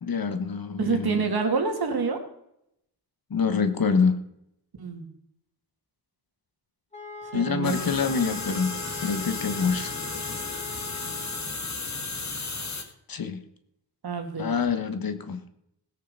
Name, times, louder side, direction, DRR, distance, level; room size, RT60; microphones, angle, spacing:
voice 1, 0.0-1.1 3.3-4.2 7.3-8.7 9.0-10.0 13.1-13.4 14.4-15.4, left 5 dB, 60° left, 9 dB, 1.3 m, -26 dB
voice 2, 0.8-2.2 4.8-5.1 7.3-8.0 14.0-14.5, right 4 dB, 65° right, 5 dB, 2.3 m, -27 dB
sound 1, 6.9-11.6, left 3 dB, 15° left, 2.1 m, -41 dB
sound 2, 7.6-12.8, left 3 dB, 40° left, 2.1 m, -34 dB
17.0 x 6.7 x 6.7 m, 0.78 s
wide cardioid pair, 105°, 40 cm